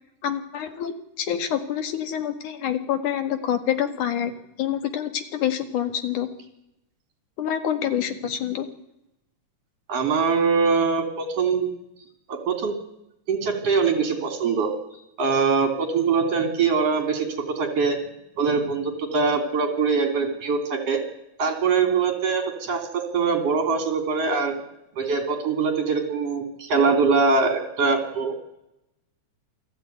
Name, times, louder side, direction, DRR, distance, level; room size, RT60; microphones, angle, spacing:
voice 1, 0.2-4.3 4.6-6.3 7.4-8.7, left 9 dB, 75° left, 8 dB, 3.3 m, -27 dB
voice 2, 9.9-11.7 12.3-12.7 13.3-14.7 15.2-18.0 18.4-21.0 21.4-24.5 25.0-28.4, right 5 dB, 50° right, 6 dB, 4.0 m, -23 dB
28.0 x 15.5 x 9.3 m, 0.88 s
omnidirectional pair, 3.6 m